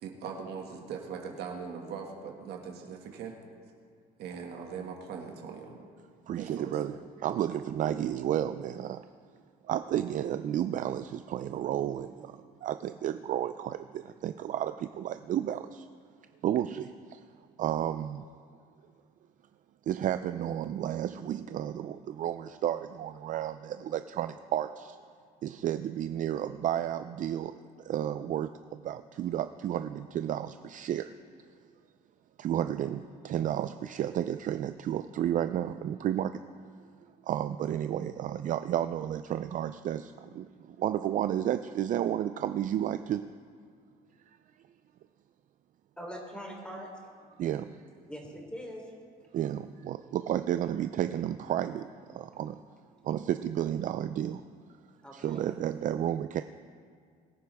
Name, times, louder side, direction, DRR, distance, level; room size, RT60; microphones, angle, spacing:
voice 1, 0.0-3.3 4.2-5.8 6.3-6.8, right 6 dB, 75° right, 1 dB, 2.0 m, -40 dB
voice 2, 6.3-9.1 9.6-15.9 16.4-17.2 17.6-18.3 19.9-25.0 25.4-31.2 32.4-36.4 37.2-43.3 47.4-47.8 49.3-52.6 53.0-54.4 55.1-56.4, right 11 dB, 50° right, 11 dB, 0.4 m, -32 dB
voice 3, 46.0-46.9 48.0-48.9 55.0-55.4, equal, 5° left, -1 dB, 3.4 m, -42 dB
22.5 x 9.8 x 3.5 m, 2.1 s
cardioid pair, 110°, 17 cm